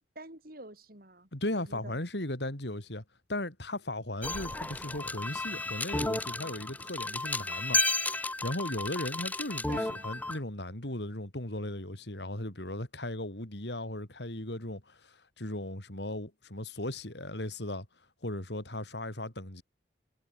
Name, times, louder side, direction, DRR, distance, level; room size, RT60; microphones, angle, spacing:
voice 1, 0.0-1.3 1.6-2.0 9.6-10.1, right 2 dB, 55° right, 7.4 m, -47 dB
voice 2, 1.3-3.0 3.3-7.8 8.2-17.9 18.2-19.6, left 1 dB, 75° left, 4.3 m, -37 dB
sound 1, 4.2-10.4, left 2 dB, 10° left, 0.5 m, -33 dB
head